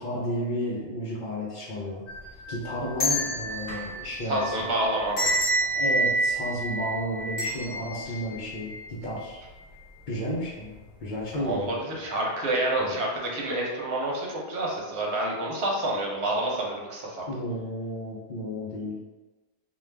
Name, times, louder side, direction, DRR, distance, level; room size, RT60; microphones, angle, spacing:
voice 1, 0.0-2.0 2.5-4.7 5.6-9.4 10.1-11.8 12.8-12.9 17.3-19.0, equal, 55° left, -5 dB, 0.7 m, -32 dB
sound 1, 2.1-9.2 9.6-9.7 10.6-10.9 11.3-11.5, right 1 dB, 85° left, 1.1 m, -29 dB
voice 2, 4.3-5.3 11.4-17.2, right 1 dB, 75° right, -2 dB, 1.0 m, -28 dB
2.4 x 2.3 x 3.2 m, 1.2 s
omnidirectional pair, 1.1 m